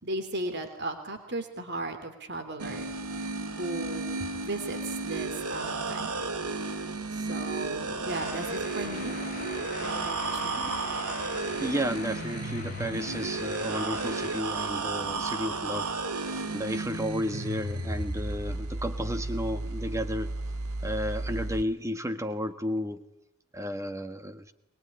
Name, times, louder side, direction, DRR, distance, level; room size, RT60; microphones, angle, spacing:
voice 1, 0.0-2.9 3.2-6.3 7.1-9.2 9.8-10.7, right 2 dB, 50° right, 7 dB, 3.4 m, -36 dB
sound 1, 2.6-21.6, right 3 dB, 90° right, 2.2 m, -33 dB
sound 2, 8.2-14.4, left 4 dB, 35° left, 2.2 m, -42 dB
voice 2, 11.6-20.4 20.8-23.0 23.5-24.5, equal, 15° right, 9 dB, 1.4 m, -33 dB
22.5 x 22.0 x 9.9 m, 0.77 s
head